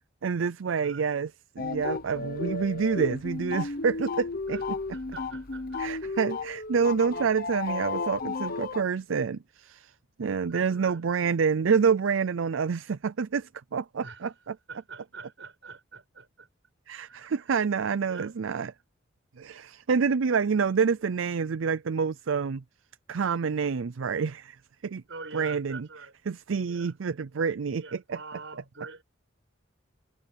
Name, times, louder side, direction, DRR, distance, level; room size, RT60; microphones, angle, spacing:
voice 1, 0.2-1.3 1.6-4.6 5.8-9.9 10.2-14.3 16.9-18.7 19.4-22.6 23.1-24.6 24.8-25.0 25.3-25.9 26.3-28.2, right 5 dB, 85° right, 0.5 m, -27 dB
sound 1, 1.6-8.8, left 3 dB, 50° left, 1.0 m, -33 dB
voice 2, 4.9-6.0 10.5-11.0 14.0-16.5 17.1-17.5 18.1-18.3 25.1-26.2 26.6-26.9 27.8-29.0, right 4 dB, 70° right, 7.0 m, -45 dB
head